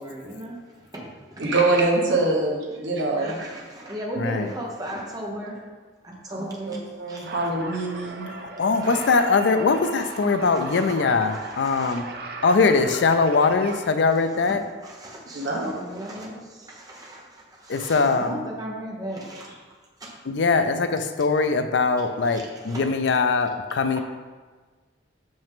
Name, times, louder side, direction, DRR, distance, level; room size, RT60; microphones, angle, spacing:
voice 1, 0.0-1.5 3.2-5.6 6.0-6.8 7.1-7.3 8.8-8.9 10.1-10.2 10.4-10.9 11.3-12.0 14.5-19.6 20.0-20.1 22.3-22.9 24.0-24.1, right 1 dB, 20° right, -2 dB, 1.0 m, -37 dB
voice 2, 1.4-3.6 6.3-8.3 15.3-15.7, right 2 dB, 70° right, -1 dB, 1.1 m, -24 dB
voice 3, 4.2-4.5 8.3-12.0 12.4-14.6 17.7-18.5 20.2-24.0, left 4 dB, 65° left, 9 dB, 0.4 m, -22 dB
sound 1, 7.2-13.9, right 3 dB, 55° right, 0.6 m, -37 dB
5.9 x 5.2 x 3.6 m, 1.4 s
head